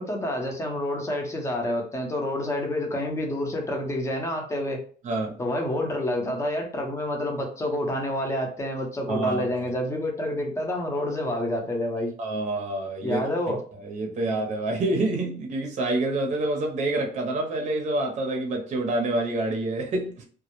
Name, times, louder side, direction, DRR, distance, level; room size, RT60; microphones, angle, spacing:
voice 1, 0.0-4.8 5.4-12.1 13.0-13.6, left 1 dB, 15° left, 0.7 m, -28 dB
voice 2, 5.0-5.4 9.1-9.6 12.2-13.2 13.5-20.2, right 2 dB, 45° right, 0.6 m, -27 dB
2.2 x 2.0 x 2.9 m
cardioid pair, 110°, 17 cm